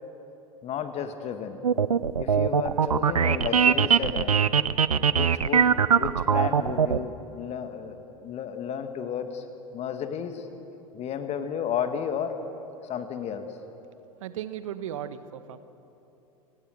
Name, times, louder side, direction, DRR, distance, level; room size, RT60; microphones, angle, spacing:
voice 1, 0.6-1.6 2.2-4.4 5.1-9.4 9.7-10.5 10.9-12.3 12.8-13.5, left 8 dB, 35° left, 8 dB, 2.0 m, -33 dB
sound 1, 1.6-7.0, right 7 dB, 80° right, 0.6 m, -21 dB
voice 2, 14.2-15.6, right 10 dB, 65° right, 12 dB, 1.2 m, -36 dB
29.5 x 18.0 x 6.6 m, 2.9 s
figure-of-eight pair, 80°, 18 cm